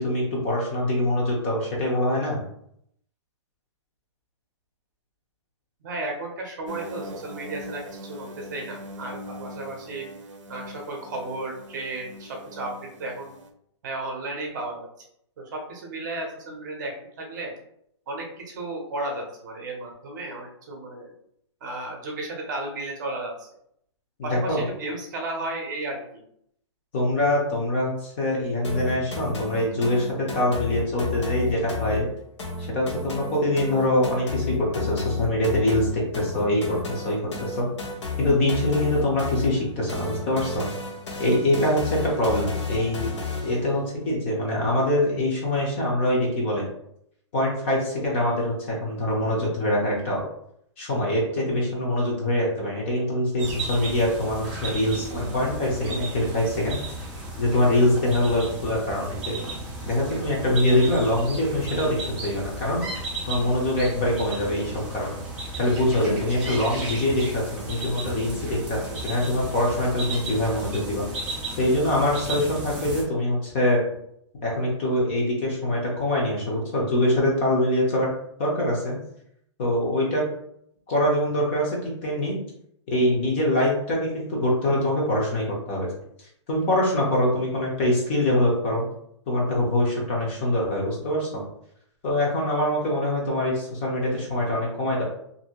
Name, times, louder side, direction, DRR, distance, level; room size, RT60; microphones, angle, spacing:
voice 1, 0.0-2.4 24.3-24.7 26.9-32.1 32.7-37.7 38.2-40.7 41.2-43.1 43.4-46.7 47.3-50.3 50.8-56.9 57.4-59.4 59.8-62.0 62.2-62.8 63.3-65.2 65.6-71.1 71.6-73.8 74.4-78.1 78.4-79.0 79.6-80.2 80.9-82.4 82.9-85.9 86.2-88.9 89.3-91.4 92.0-95.0, left 1 dB, 25° left, -3 dB, 0.6 m, -24 dB
voice 2, 5.8-10.1 10.5-13.3 13.8-14.9 15.4-17.5 18.1-21.1 21.6-23.5 24.2-26.2, right 2 dB, 40° right, 0 dB, 0.7 m, -34 dB
sound 1, 6.7-13.5, right 1 dB, 85° right, 0.6 m, -41 dB
sound 2, 28.6-43.7, left 4 dB, 70° left, 1.0 m, -32 dB
sound 3, 53.4-73.0, right 2 dB, 5° right, 0.3 m, -35 dB
2.6 x 2.6 x 2.9 m, 0.71 s
hypercardioid pair, 170°, 16 cm